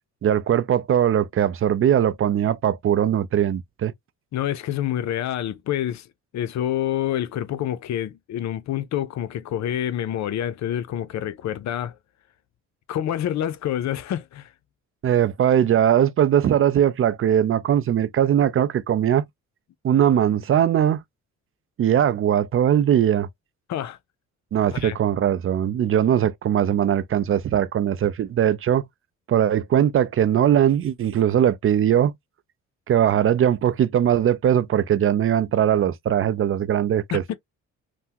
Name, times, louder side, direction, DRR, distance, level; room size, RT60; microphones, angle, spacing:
voice 1, 0.2-3.9 15.0-19.2 19.8-21.0 21.8-23.3 24.5-28.8 29.3-32.1 32.9-37.3, right 10 dB, 45° right, 0.5 m, -20 dB
voice 2, 4.3-6.1 6.3-12.0 12.9-14.5 23.7-24.0 24.7-25.0 37.1-37.3, left 11 dB, 65° left, 0.6 m, -27 dB
3.4 x 2.1 x 2.8 m
cardioid pair, 90°, 30 cm